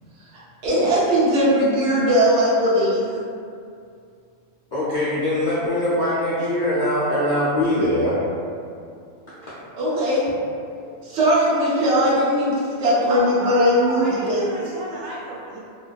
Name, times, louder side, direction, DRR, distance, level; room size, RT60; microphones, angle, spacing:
voice 1, 0.6-3.1 9.8-10.3 11.0-14.5, equal, 60° right, -9 dB, 0.9 m, -19 dB
voice 2, 4.7-8.2, left 1 dB, 65° left, -12 dB, 0.4 m, -22 dB
voice 3, 13.1-15.6, right 1 dB, 85° right, -5 dB, 1.0 m, -31 dB
2.4 x 2.2 x 2.3 m, 2.4 s
omnidirectional pair, 1.4 m